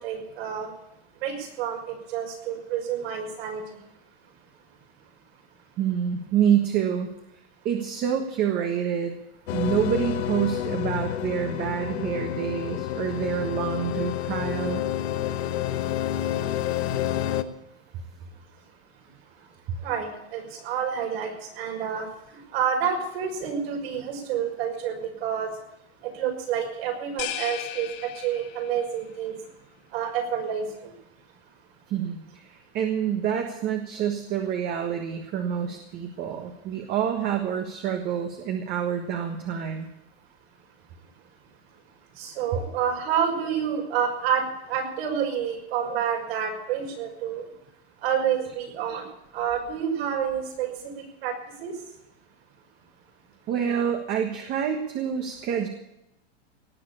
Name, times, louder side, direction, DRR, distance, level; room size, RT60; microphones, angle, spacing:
voice 1, 0.0-0.7 1.2-3.6 19.8-22.1 22.5-25.5 26.0-29.3 29.9-30.7 42.2-47.4 48.0-49.0 49.3-50.7 51.2-51.3 51.6-51.7, right 8 dB, 65° right, 1 dB, 5.8 m, -28 dB
voice 2, 5.8-7.1 7.6-9.2 9.5-14.8 31.9-39.9 53.5-55.7, right 8 dB, 30° right, 4 dB, 1.5 m, -27 dB
sound 1, 9.5-17.4, left 11 dB, 75° left, 1.2 m, -29 dB
sound 2, 27.2-28.9, left 12 dB, 55° left, 2.3 m, -35 dB
18.5 x 7.8 x 8.6 m, 0.85 s
supercardioid pair, 165°, 32 cm